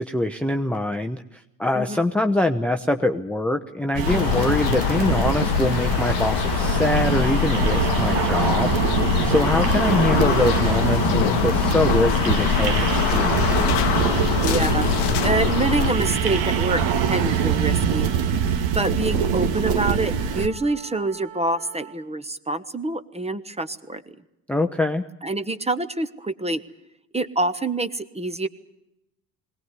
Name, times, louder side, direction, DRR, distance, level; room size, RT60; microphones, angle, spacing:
voice 1, 0.0-8.8 9.2-13.5 24.5-25.0, left 1 dB, 5° left, 6 dB, 0.8 m, -24 dB
sound 1, 3.9-20.5, right 7 dB, 60° right, 1.7 m, -23 dB
sound 2, 4.0-15.9, left 13 dB, 55° left, 0.9 m, -24 dB
Wind instrument woodwind instrument, 12.8-22.0, right 10 dB, 40° right, 2.6 m, -41 dB
voice 2, 14.4-14.9 15.2-18.1 18.7-24.0 25.2-26.6 27.1-28.5, right 2 dB, 10° right, 13 dB, 1.1 m, -26 dB
20.5 x 17.5 x 9.5 m, 0.88 s
hypercardioid pair, 70°, 50 cm